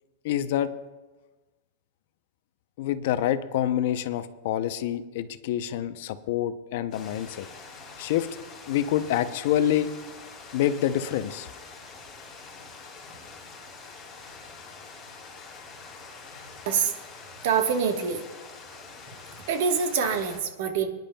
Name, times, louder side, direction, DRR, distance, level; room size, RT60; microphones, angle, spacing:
voice 1, 0.2-0.7 2.8-7.5 8.0-8.3 8.7-9.9 10.5-11.5, left 11 dB, 60° left, 12 dB, 0.6 m, -27 dB
sound 1, 6.9-20.4, left 4 dB, 15° left, 4.5 m, -45 dB
voice 2, 17.4-18.3 19.5-20.9, right 6 dB, 60° right, 6 dB, 1.2 m, -25 dB
25.0 x 10.5 x 2.2 m, 1.2 s
supercardioid pair, 160°, 0 cm